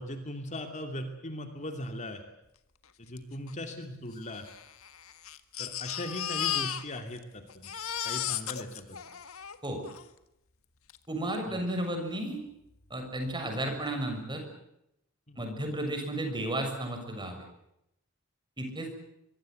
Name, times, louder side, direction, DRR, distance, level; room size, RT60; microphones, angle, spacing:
voice 1, 0.0-2.2 3.0-4.4 5.6-7.7 8.0-9.0 11.5-11.6 15.3-15.4, left 1 dB, 35° left, 5 dB, 2.7 m, -39 dB
Crying sobbing, 3.2-3.3 3.5-3.6 4.3-7.2 7.5-10.1 10.9-11.0 11.3-11.4, left 10 dB, 70° left, 1.7 m, -35 dB
voice 2, 11.1-12.4 12.9-14.4 15.4-17.4 18.6-18.9, right 1 dB, 20° right, 5 dB, 6.8 m, -33 dB
25.0 x 23.5 x 7.9 m, 0.82 s
head